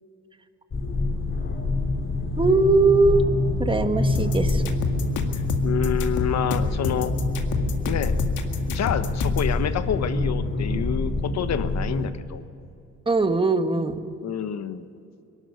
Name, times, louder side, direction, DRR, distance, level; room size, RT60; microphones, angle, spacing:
sound 1, 0.7-12.1, left 2 dB, 40° left, 2.9 m, -26 dB
voice 1, 2.4-3.2 3.6-4.7 13.1-14.0, right 3 dB, 15° right, 8 dB, 1.4 m, -20 dB
sound 2, 4.1-9.5, left 7 dB, 80° left, 2.0 m, -30 dB
voice 2, 5.3-7.1 7.9-8.2 8.7-12.4 14.2-14.9, left 8 dB, 60° left, 11 dB, 1.2 m, -28 dB
22.0 x 12.5 x 9.6 m, 2.7 s
cardioid pair, 90°, 30 cm